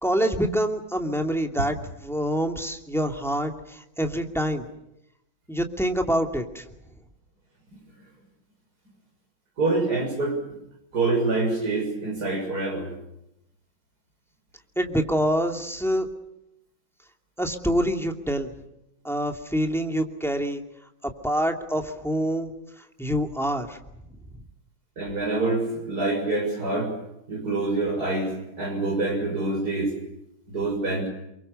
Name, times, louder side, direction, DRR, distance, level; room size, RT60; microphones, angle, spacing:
voice 1, 0.0-4.7 5.5-6.6 14.8-16.1 17.4-18.5 19.0-20.6 21.2-22.5 23.0-23.8, equal, ahead, 3 dB, 2.4 m, -26 dB
voice 2, 9.6-10.4 10.9-12.9 25.0-26.9 27.3-29.9 30.5-31.1, right 3 dB, 50° right, 3 dB, 7.0 m, -26 dB
29.0 x 23.5 x 6.8 m, 0.84 s
omnidirectional pair, 2.2 m